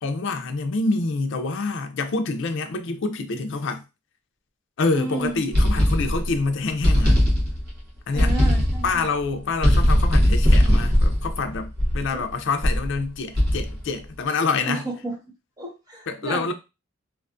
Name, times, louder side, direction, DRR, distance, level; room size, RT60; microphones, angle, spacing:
voice 1, 0.0-3.8 4.8-7.2 8.1-8.3 8.8-14.8 16.1-16.5, left 3 dB, 65° left, 0.4 m, -26 dB
voice 2, 4.9-5.4 8.1-9.1 12.1-12.3 14.6-15.2 15.6-16.5, right 2 dB, 20° right, 0.8 m, -32 dB
sound 1, 5.5-6.4 6.8-7.8 8.2-9.0 9.6-12.1 12.6-12.9 13.4-13.9, equal, 55° right, 0.9 m, -19 dB
2.5 x 2.3 x 2.4 m
head